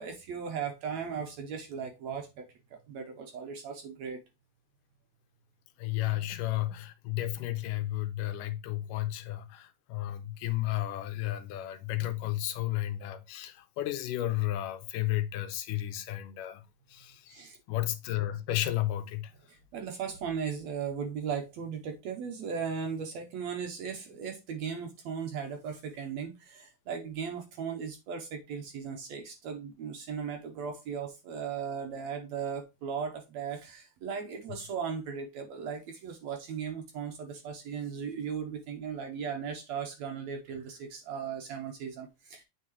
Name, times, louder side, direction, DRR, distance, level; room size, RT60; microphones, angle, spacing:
voice 1, 0.0-4.2 17.3-17.6 19.5-42.4, right 6 dB, 70° right, 1.8 m, -37 dB
voice 2, 5.8-16.6 16.9-19.3, left 15 dB, 90° left, 2.2 m, -33 dB
8.3 x 4.7 x 3.0 m
omnidirectional pair, 3.8 m